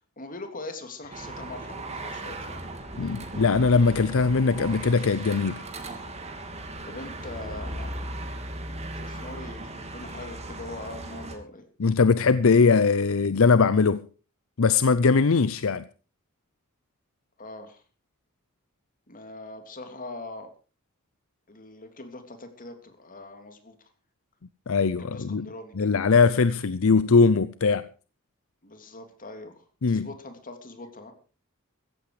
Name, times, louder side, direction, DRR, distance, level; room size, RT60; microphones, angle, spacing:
voice 1, 0.2-2.6 6.8-7.9 8.8-11.6 17.4-17.8 19.1-20.5 21.5-23.9 25.0-25.9 28.6-31.1, left 2 dB, 40° left, 3.2 m, -42 dB
sound 1, 1.1-11.4, right 1 dB, 30° right, 3.1 m, -37 dB
voice 2, 3.0-5.6 11.8-14.1 14.6-15.8 24.7-25.5 25.8-27.9 29.8-30.1, left 4 dB, 70° left, 0.6 m, -21 dB
15.5 x 14.0 x 5.0 m
head